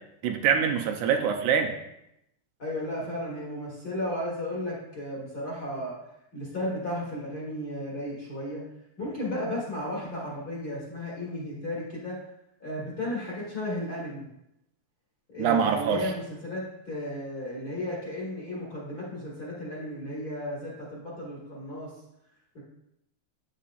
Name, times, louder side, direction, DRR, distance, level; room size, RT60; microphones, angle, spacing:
voice 1, 0.2-1.7 15.4-16.1, right 7 dB, 80° right, 3 dB, 2.1 m, -24 dB
voice 2, 2.6-6.0 6.3-8.6 9.0-12.2 12.6-14.3 15.3-21.9 22.5-22.6, left 1 dB, 35° left, -6 dB, 1.8 m, -34 dB
8.4 x 6.6 x 2.5 m, 0.82 s
omnidirectional pair, 3.5 m